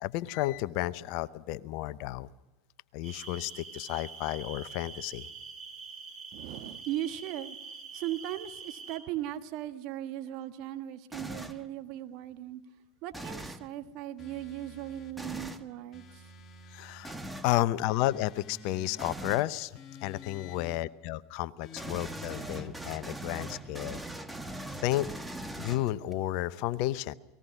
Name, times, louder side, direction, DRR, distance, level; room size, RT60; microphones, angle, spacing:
voice 1, 0.0-2.3 2.9-5.3 16.7-17.2 17.4-19.7 20.0-24.0 24.8-25.1 25.6-27.1, left 15 dB, 55° left, 17 dB, 0.8 m, -32 dB
sound 1, 3.0-9.0, right 5 dB, 30° right, 5.0 m, -45 dB
voice 2, 6.3-7.6 7.9-12.6 13.0-16.2, right 12 dB, 50° right, 8 dB, 1.6 m, -38 dB
sound 2, 11.1-11.7 13.1-13.7 15.2-15.6 17.0-17.5 19.0-19.5 21.7-26.1, right 1 dB, 5° right, 1.5 m, -40 dB
sound 3, 14.2-15.2 15.9-17.1 17.9-19.1 19.7-20.8 21.6-22.7, left 4 dB, 30° left, 2.1 m, -50 dB
29.0 x 19.5 x 6.0 m, 1.0 s
hypercardioid pair, 85°, 0 cm